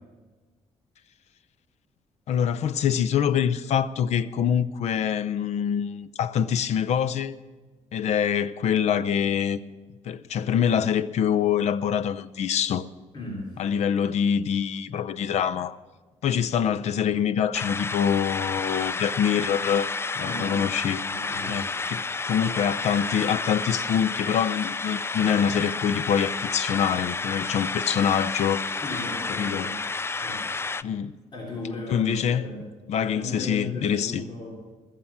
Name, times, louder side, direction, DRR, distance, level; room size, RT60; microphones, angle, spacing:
voice 1, 2.3-7.4 7.9-9.6 10.0-12.9 13.6-15.8 16.2-19.9 20.2-21.0 21.5-28.7 29.4-29.7 30.8-31.2 31.9-32.5 32.9-34.2, left 8 dB, 70° left, 0.6 m, -25 dB
voice 2, 13.1-13.5 20.2-20.7 21.1-21.9 27.6-27.7 28.8-29.8 30.2-30.6 31.3-32.7 33.1-34.6, left 2 dB, 45° left, 3.4 m, -36 dB
sound 1, 17.5-30.8, left 4 dB, 20° left, 0.4 m, -31 dB
20.5 x 7.6 x 7.2 m
cardioid pair, 85°, 12 cm